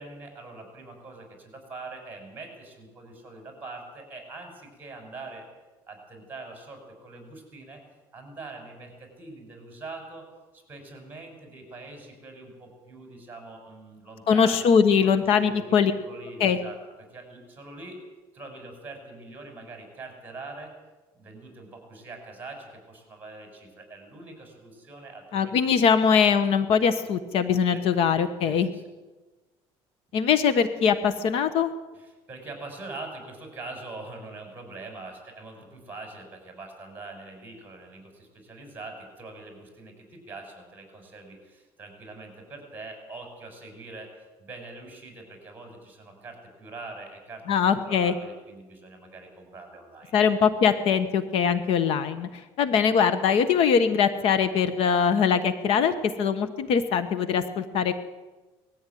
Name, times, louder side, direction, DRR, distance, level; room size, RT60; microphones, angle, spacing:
voice 1, 0.0-5.5 5.9-7.8 8.1-10.2 10.5-14.7 15.0-18.0 18.3-20.7 21.1-25.7 27.7-27.8 28.4-28.8 31.9-50.2, right 3 dB, 15° right, 4 dB, 6.1 m, -43 dB
voice 2, 14.3-15.9 16.4-16.6 25.3-28.7 30.1-31.7 47.5-48.1 50.1-57.9, left 6 dB, 60° left, 12 dB, 1.2 m, -22 dB
20.0 x 14.5 x 9.3 m, 1.2 s
cardioid pair, 150°, 11 cm